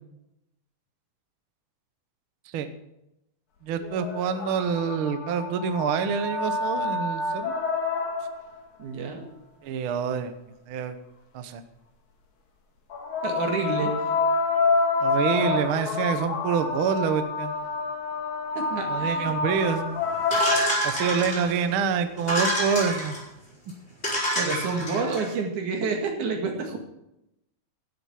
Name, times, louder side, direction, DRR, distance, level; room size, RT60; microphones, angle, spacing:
voice 1, 3.6-7.5 9.6-10.4 10.7-11.0 11.3-11.6 15.0-17.5 18.9-20.0 20.8-23.2, right 6 dB, 65° right, 9 dB, 1.4 m, -27 dB
sound 1, 3.8-8.6 12.9-21.2 22.5-22.6, left 3 dB, 75° left, 3.0 m, -28 dB
voice 2, 8.8-9.3 13.2-14.0 18.6-19.4 24.4-26.8, right 4 dB, 85° right, 2 dB, 3.4 m, -29 dB
sound 2, 20.3-21.6 22.2-23.2 23.7-23.8 24.0-25.2, equal, 20° left, 5.0 m, -27 dB
11.5 x 7.9 x 7.1 m, 0.85 s
omnidirectional pair, 3.4 m